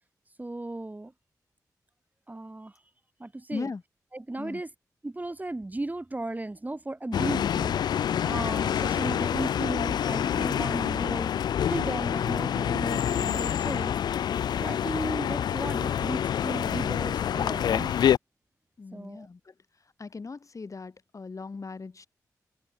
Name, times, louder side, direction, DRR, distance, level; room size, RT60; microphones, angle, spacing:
voice 1, 0.4-1.1 2.3-2.7 3.2-3.7 4.1-4.7 5.0-11.3 11.7-14.0 14.6-17.9 18.9-19.3, right 2 dB, 25° right, 1.4 m, -35 dB
voice 2, 3.5-3.8 4.4-4.6 18.8-19.5 20.0-22.1, left 4 dB, 50° left, 2.2 m, -38 dB
sound 1, 7.1-18.2, left 9 dB, 80° left, 0.3 m, -27 dB
open air
cardioid pair, 45°, 7 cm